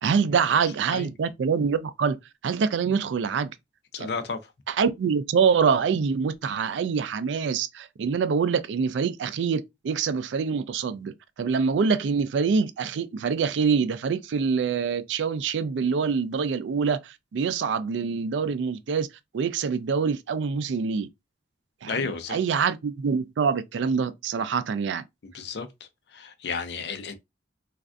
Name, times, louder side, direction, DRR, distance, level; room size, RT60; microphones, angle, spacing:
voice 1, 0.0-2.2 2.4-3.5 4.0-4.1 4.7-19.1 19.3-21.1 21.8-25.0, right 6 dB, 90° right, 0.4 m, -25 dB
voice 2, 3.9-4.4 21.9-22.4 25.2-25.7 26.1-27.1, left 4 dB, 65° left, 0.5 m, -32 dB
3.2 x 2.4 x 2.4 m
head